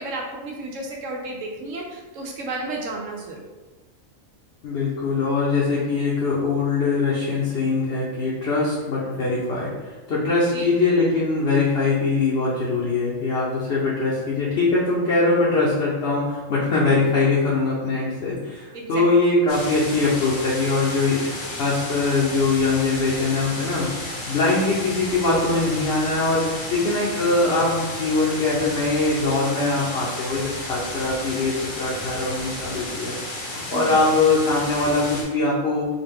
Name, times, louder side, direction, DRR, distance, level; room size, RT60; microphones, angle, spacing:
voice 1, 0.0-3.5 10.5-10.7 16.9-17.0 18.7-19.0 33.7-34.0, right 2 dB, 70° right, 0 dB, 0.9 m, -32 dB
voice 2, 4.6-33.2 33.5-35.9, left 3 dB, 55° left, -6 dB, 0.9 m, -22 dB
sound 1, 19.5-35.2, left 1 dB, 75° left, 1.3 m, -33 dB
4.0 x 2.2 x 3.4 m, 1.3 s
omnidirectional pair, 1.4 m